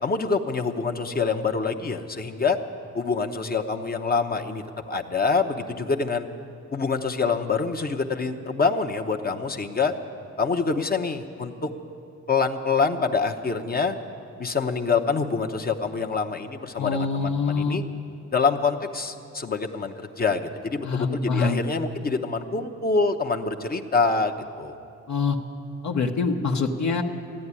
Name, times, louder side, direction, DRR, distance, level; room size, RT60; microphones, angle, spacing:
voice 1, 0.0-2.6 2.9-6.3 6.7-9.9 10.4-11.7 12.3-13.9 14.4-17.8 18.3-24.7, left 4 dB, 30° left, 3 dB, 0.8 m, -26 dB
voice 2, 16.8-17.8 20.8-21.6 25.1-25.4 25.8-27.0, left 4 dB, 65° left, 2 dB, 1.1 m, -25 dB
14.5 x 9.9 x 9.7 m, 2.6 s
cardioid pair, 90°, 30 cm